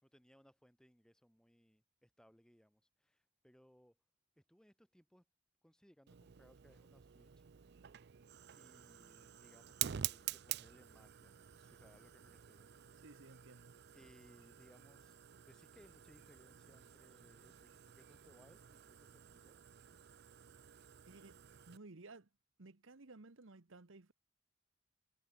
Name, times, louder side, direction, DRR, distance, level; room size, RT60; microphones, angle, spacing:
voice 1, 0.0-4.0 4.4-5.2 5.6-7.7 8.5-12.7 13.9-19.6, equal, 5° left, 4.2 m, -67 dB
Fire, 6.1-21.8, right 12 dB, 55° right, 0.5 m, -49 dB
voice 2, 13.0-13.8 21.1-21.4 21.7-22.3 22.6-24.1, right 3 dB, 70° right, 1.1 m, -56 dB
head